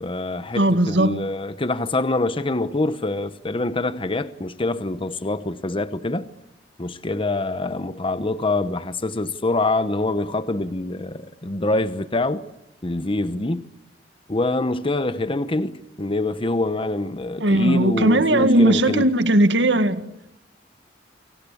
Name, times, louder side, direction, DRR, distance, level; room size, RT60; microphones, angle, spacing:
voice 1, 0.0-6.3 6.8-12.4 12.8-13.7 14.3-19.1, left 2 dB, 30° left, 1.0 m, -25 dB
voice 2, 0.5-1.2 17.4-20.0, right 1 dB, 80° right, 2.0 m, -18 dB
29.5 x 24.0 x 8.4 m
head